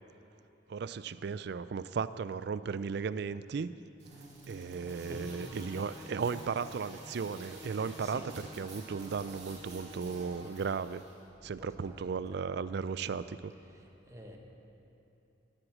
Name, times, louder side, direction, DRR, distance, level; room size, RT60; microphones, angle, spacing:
voice 1, 0.7-3.7 4.5-8.2 8.6-11.0 11.4-13.5, right 5 dB, 60° right, 15 dB, 0.4 m, -35 dB
sound 1, 4.0-11.1, right 1 dB, 40° right, 2.4 m, -49 dB
voice 2, 4.8-5.4 7.7-8.3 11.4-12.5 13.6-14.4, equal, 15° right, 1 dB, 1.3 m, -50 dB
16.5 x 8.0 x 7.4 m, 2.9 s
head